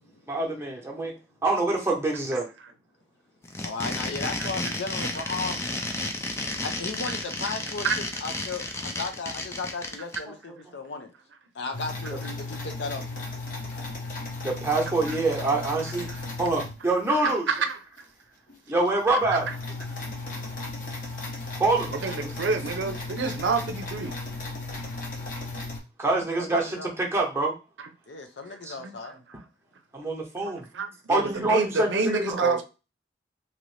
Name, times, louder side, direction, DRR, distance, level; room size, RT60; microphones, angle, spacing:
voice 1, 0.3-1.1 1.4-2.5 14.4-16.1 16.4-17.5 18.7-19.5 21.6-21.9 22.2-22.3 26.0-27.6 28.6-28.7 29.9-30.6 31.1-32.6, right 2 dB, 15° right, 0.8 m, -25 dB
sound 1, 3.4-10.2, left 2 dB, 15° left, 0.4 m, -32 dB
voice 2, 3.6-5.6 6.6-11.1 11.5-13.0 26.1-26.9 28.1-29.2, left 3 dB, 75° left, 0.5 m, -35 dB
sound 2, 11.7-17.4 18.0-18.1 18.5-18.6 18.9-25.8, left 2 dB, 45° left, 0.8 m, -35 dB
voice 3, 17.5-17.8 19.3-19.4 21.9-24.2 28.8-29.1 30.7-32.6, right 4 dB, 85° right, 0.5 m, -28 dB
2.9 x 2.6 x 3.2 m
head